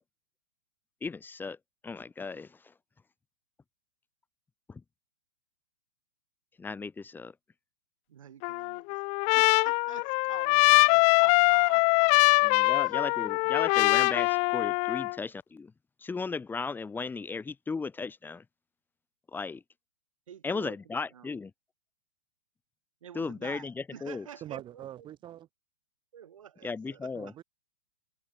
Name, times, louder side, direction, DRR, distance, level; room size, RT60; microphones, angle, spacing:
voice 1, 1.0-1.6 1.8-2.7 4.7-4.8 6.6-7.3 12.4-15.7 16.0-18.4 19.3-19.6 20.4-21.5 23.1-24.3 26.6-27.3, left 4 dB, 10° left, 3.0 m, -36 dB
voice 2, 8.1-12.4 12.8-13.0 20.3-20.8 21.1-21.3 23.0-25.1 26.1-27.4, right 9 dB, 70° right, 6.2 m, -49 dB
Trumpet, 8.4-15.2, left 30 dB, 40° left, 1.0 m, -23 dB
voice 3, 24.4-25.5 27.1-27.4, right 12 dB, 25° right, 4.9 m, -43 dB
hypercardioid pair, 120°, 17 cm